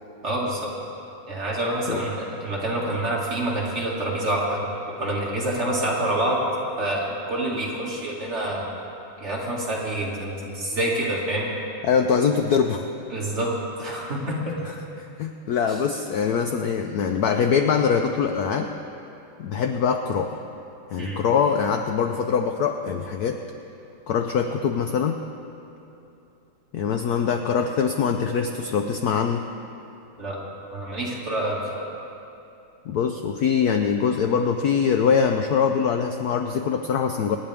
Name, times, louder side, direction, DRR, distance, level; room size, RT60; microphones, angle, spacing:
voice 1, 0.2-0.7 1.3-4.6 5.0-6.4 6.8-8.6 9.2-11.5 13.1-13.5 13.8-14.7 15.7-15.8 21.0-21.2 30.2-30.4 30.7-31.8, right 1 dB, 30° right, -5 dB, 2.4 m, -27 dB
voice 2, 11.8-12.9 15.0-18.7 19.4-20.4 20.9-23.4 24.1-25.2 26.7-29.4 32.9-37.4, left 6 dB, 80° left, 5 dB, 0.8 m, -23 dB
26.0 x 10.0 x 3.5 m, 2.9 s
omnidirectional pair, 2.3 m